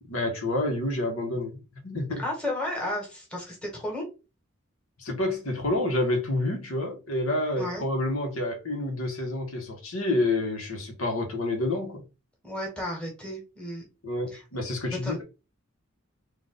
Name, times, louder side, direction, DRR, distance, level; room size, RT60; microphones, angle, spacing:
voice 1, 0.1-1.6 1.8-2.2 5.0-12.0 14.0-15.2, left 2 dB, 80° left, 1.5 m, -28 dB
voice 2, 2.2-4.1 7.6-7.8 12.4-13.8 14.3-14.4 14.9-15.2, left 1 dB, 5° left, 1.6 m, -33 dB
4.0 x 2.8 x 3.9 m
head